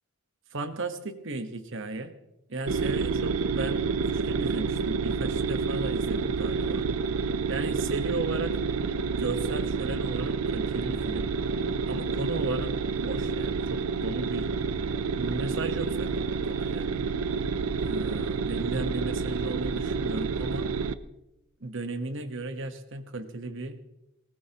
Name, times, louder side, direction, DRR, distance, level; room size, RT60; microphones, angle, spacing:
voice 1, 0.5-2.1 2.5-3.9 4.1-6.9 7.5-8.6 9.2-11.3 11.9-12.7 13.0-14.5 15.0-17.0 17.8-20.7 21.6-23.8, right 2 dB, 60° right, 8 dB, 1.3 m, -35 dB
sound 1, 2.7-20.9, right 5 dB, 85° right, 0.6 m, -29 dB
19.0 x 18.5 x 3.0 m, 0.90 s
head